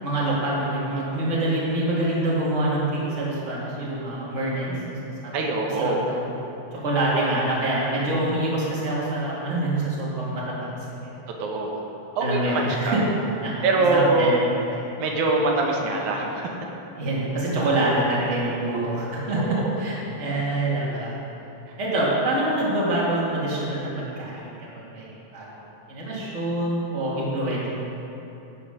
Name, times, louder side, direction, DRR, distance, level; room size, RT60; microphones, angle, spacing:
voice 1, 0.0-5.0 5.2-5.5 5.8-6.2 6.7-11.2 12.2-13.0 13.4-13.6 13.9-14.4 14.7-14.9 17.0-21.1 21.8-27.7, right 1 dB, 25° right, -6 dB, 2.1 m, -26 dB
voice 2, 5.3-6.0 7.1-7.3 11.4-11.8 12.2-13.0 13.6-14.3 15.0-16.5 19.6-19.7, right 3 dB, 85° right, 0 dB, 2.5 m, -23 dB
11.5 x 8.4 x 5.0 m, 2.9 s
omnidirectional pair, 3.3 m